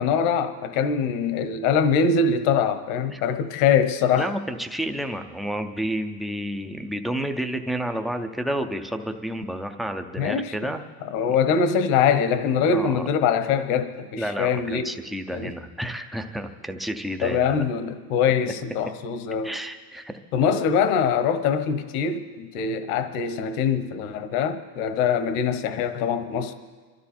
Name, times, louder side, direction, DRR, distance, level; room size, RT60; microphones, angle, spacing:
voice 1, 0.0-4.3 10.2-10.5 11.1-14.9 15.3-15.5 17.2-19.5 20.3-26.5, left 6 dB, 65° left, 10 dB, 1.2 m, -23 dB
voice 2, 4.2-10.8 12.7-13.1 14.2-17.6 19.4-20.1, right 1 dB, ahead, 5 dB, 0.4 m, -30 dB
26.0 x 13.0 x 4.3 m, 1.5 s
supercardioid pair, 140°, 46 cm